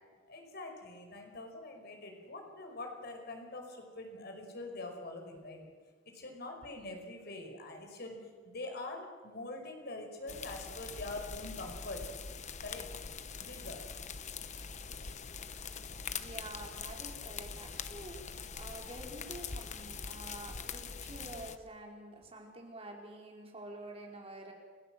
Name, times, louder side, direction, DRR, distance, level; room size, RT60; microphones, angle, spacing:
voice 1, 0.3-5.7 6.0-8.2 8.4-12.0 12.6-12.9 13.4-13.8, left 2 dB, 55° left, 3 dB, 5.1 m, -44 dB
sound 1, 10.3-21.6, left 5 dB, 40° left, 1.0 m, -43 dB
voice 2, 16.1-24.5, right 1 dB, 30° right, 0 dB, 4.8 m, -48 dB
29.5 x 16.0 x 7.8 m, 1.5 s
head